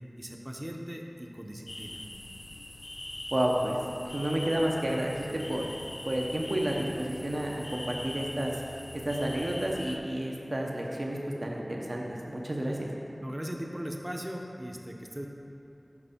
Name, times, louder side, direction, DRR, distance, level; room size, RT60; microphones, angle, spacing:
voice 1, 0.2-2.0 13.2-15.3, equal, 25° right, 1 dB, 0.6 m, -39 dB
sound 1, 1.7-10.0, left 1 dB, 50° left, 0.4 m, -42 dB
voice 2, 3.3-3.8 4.0-5.7 6.0-8.6 8.9-12.9, right 1 dB, 60° right, -1 dB, 0.8 m, -31 dB
5.4 x 4.7 x 5.1 m, 2.7 s
wide cardioid pair, 40°, 0 cm